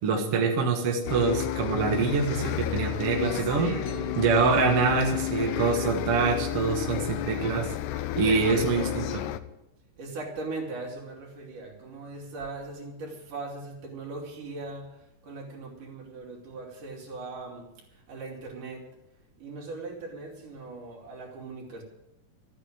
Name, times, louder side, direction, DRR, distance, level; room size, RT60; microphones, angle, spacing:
voice 1, 0.0-3.7 4.2-7.7 8.2-9.2, right 5 dB, 50° right, 2 dB, 2.2 m, -25 dB
Bus, 1.1-9.4, left 13 dB, 80° left, 2.0 m, -31 dB
voice 2, 3.4-4.2 10.0-18.8 19.4-21.8, right 3 dB, 70° right, -1 dB, 4.5 m, -39 dB
14.0 x 9.2 x 8.8 m, 0.88 s
omnidirectional pair, 3.8 m